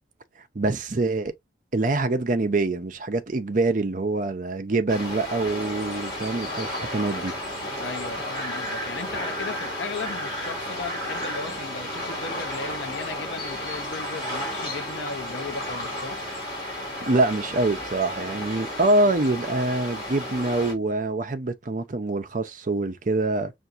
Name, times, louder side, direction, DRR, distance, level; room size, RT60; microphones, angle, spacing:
voice 1, 0.5-1.3 1.7-7.3 17.0-23.5, right 2 dB, 45° right, 0.6 m, -25 dB
sound 1, 4.9-20.7, left 1 dB, 25° left, 2.6 m, -33 dB
voice 2, 7.8-16.2, left 4 dB, 85° left, 0.6 m, -36 dB
5.7 x 2.6 x 2.5 m
head